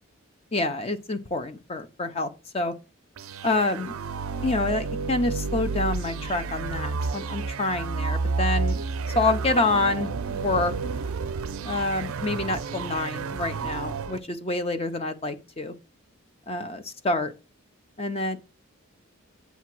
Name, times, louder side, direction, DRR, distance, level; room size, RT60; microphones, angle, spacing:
voice 1, 0.5-2.7 3.4-4.0 4.4-8.8 9.1-10.7 11.6-15.7 16.5-17.3 18.0-18.4, left 2 dB, 30° left, 0.5 m, -27 dB
sound 1, 3.2-14.2, right 4 dB, 75° right, 0.4 m, -30 dB
8.1 x 2.8 x 5.9 m
head